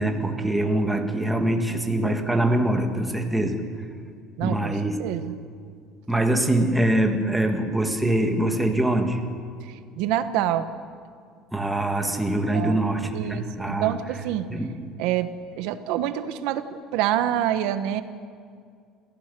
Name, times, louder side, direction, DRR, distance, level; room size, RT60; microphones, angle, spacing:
voice 1, 0.0-3.6 4.4-5.0 6.1-9.2 11.5-13.9 14.5-14.7, right 1 dB, 5° right, 4 dB, 1.6 m, -23 dB
voice 2, 4.4-4.7 5.0-5.4 9.6-10.7 12.5-12.8 13.1-14.5 15.0-18.0, right 11 dB, 70° right, 10 dB, 1.2 m, -27 dB
28.0 x 15.5 x 6.9 m, 2.2 s
cardioid pair, 165°, 0 cm